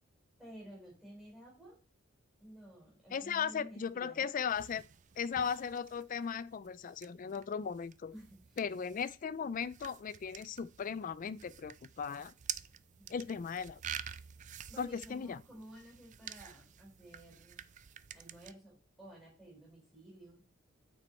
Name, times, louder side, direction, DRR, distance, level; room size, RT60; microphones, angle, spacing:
voice 1, 0.4-1.8 2.4-4.4 8.1-8.6 13.0-13.1 14.7-17.6 18.1-20.4, right 1 dB, ahead, 3.9 m, -53 dB
voice 2, 3.1-4.8 5.2-8.1 8.6-12.3 13.1-13.8 14.8-15.4, left 6 dB, 40° left, 0.3 m, -37 dB
sound 1, 4.5-18.5, right 9 dB, 35° right, 0.4 m, -49 dB
8.8 x 4.6 x 4.4 m
head